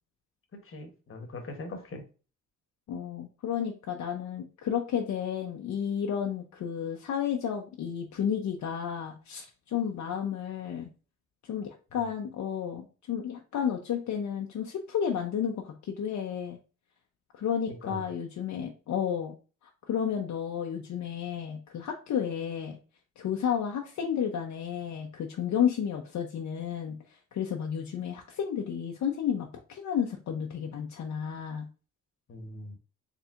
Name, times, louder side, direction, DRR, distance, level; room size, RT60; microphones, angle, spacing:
voice 1, 0.5-2.0 17.7-18.0 32.3-32.8, left 2 dB, 40° left, 5 dB, 1.1 m, -41 dB
voice 2, 2.9-10.9 11.4-16.6 17.3-19.3 19.6-22.8 23.2-27.0 27.3-31.7, left 8 dB, 65° left, 2 dB, 0.7 m, -32 dB
4.4 x 3.3 x 2.4 m, 0.35 s
cardioid pair, 110°, 31 cm